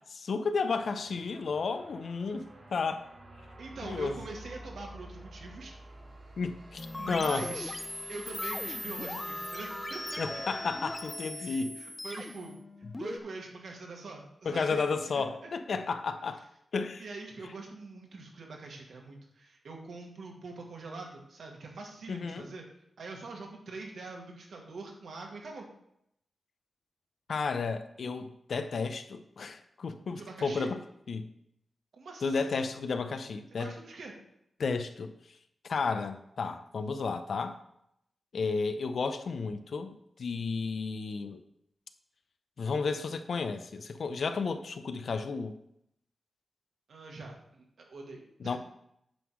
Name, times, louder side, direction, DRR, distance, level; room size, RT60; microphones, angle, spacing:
voice 1, 0.1-3.0 3.8-4.2 6.4-7.5 10.2-11.8 14.4-16.4 16.7-17.0 22.1-22.5 27.3-30.8 31.1-31.3 32.2-33.7 34.6-35.1 35.7-37.6 38.3-41.4 42.6-45.6 48.4-48.6, left 4 dB, 65° left, 9 dB, 0.7 m, -32 dB
sound 1, 0.7-11.1, right 2 dB, 55° right, 1.9 m, -49 dB
voice 2, 3.6-5.7 7.0-7.8 8.1-10.4 11.3-12.6 13.0-14.8 15.1-15.5 17.0-22.6 23.0-25.7 30.1-30.7 31.9-32.7 33.6-34.1 46.9-48.6, right 3 dB, 80° right, 0 dB, 1.9 m, -44 dB
sound 2, 6.8-13.2, left 1 dB, 20° left, 0.5 m, -39 dB
9.0 x 3.7 x 6.3 m, 0.76 s
wide cardioid pair, 130°, 0 cm